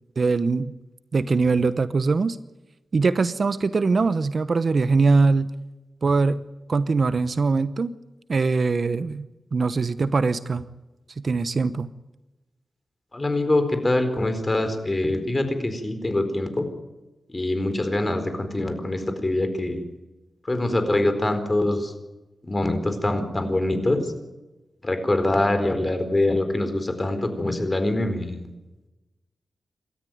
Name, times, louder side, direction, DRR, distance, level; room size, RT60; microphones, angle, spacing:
voice 1, 0.2-0.7 1.1-2.4 2.9-5.5 6.0-6.4 6.7-7.9 8.3-10.6 11.2-11.9, right 4 dB, 50° right, 14 dB, 0.9 m, -22 dB
voice 2, 13.1-16.7 17.3-19.8 20.5-21.9 22.4-24.1 24.8-28.5, left 1 dB, 25° left, 8 dB, 4.4 m, -24 dB
27.5 x 13.5 x 9.4 m, 1.1 s
wide cardioid pair, 95°, 0 cm